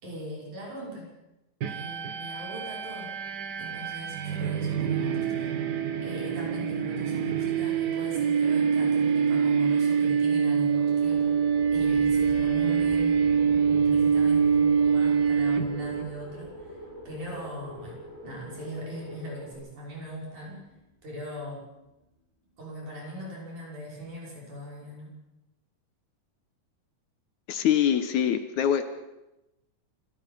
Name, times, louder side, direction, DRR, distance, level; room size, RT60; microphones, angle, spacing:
voice 1, 0.0-1.1 1.6-3.1 3.6-5.5 6.0-11.4 11.7-16.8 17.1-20.7 21.0-21.6 22.6-25.1, equal, 65° right, -3 dB, 7.1 m, -39 dB
sound 1, 1.6-16.1, right 6 dB, 80° right, 0.9 m, -25 dB
sound 2, 10.7-19.5, left 1 dB, 35° right, 8.4 m, -45 dB
sound 3, 11.0-22.1, equal, 10° left, 4.1 m, -49 dB
voice 2, 27.5-28.8, left 9 dB, 75° left, 10 dB, 2.3 m, -24 dB
27.5 x 18.0 x 5.6 m, 0.94 s
omnidirectional pair, 3.7 m